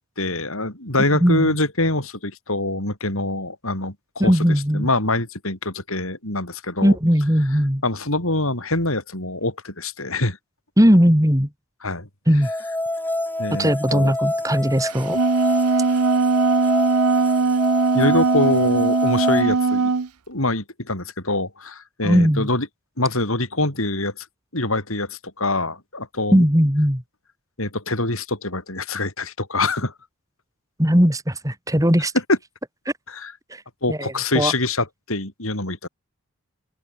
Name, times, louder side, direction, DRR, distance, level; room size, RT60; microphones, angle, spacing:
voice 1, 0.2-4.0 4.2-4.4 4.7-7.0 7.8-10.4 11.8-12.1 13.4-14.1 17.9-19.9 20.3-22.7 23.0-24.3 24.5-26.4 27.6-29.9 32.3-32.4 33.1-33.3 33.8-35.9, left 2 dB, 70° left, 6.9 m, -24 dB
voice 2, 1.1-1.5 4.2-4.9 6.8-7.8 10.8-11.5 12.3-12.5 13.6-15.2 22.0-22.5 26.3-27.0 30.8-32.1 32.8-32.9 33.5-33.6 33.9-34.5, equal, 15° right, 4.6 m, -18 dB
sound 1, 12.4-19.4, left 1 dB, 10° left, 3.9 m, -27 dB
Wind instrument woodwind instrument, 14.9-20.1, right 4 dB, 85° right, 0.7 m, -20 dB
open air
head